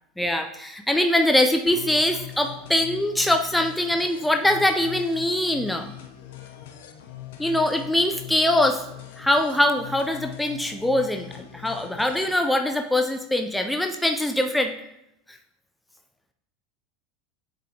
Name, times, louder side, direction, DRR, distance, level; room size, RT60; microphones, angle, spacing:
voice 1, 0.2-5.9 7.4-8.8 9.2-14.8, left 1 dB, 5° left, 5 dB, 0.4 m, -23 dB
sound 1, 1.7-12.3, left 12 dB, 70° left, 0.6 m, -41 dB
8.5 x 4.1 x 2.7 m, 0.82 s
hypercardioid pair, 85°, 0 cm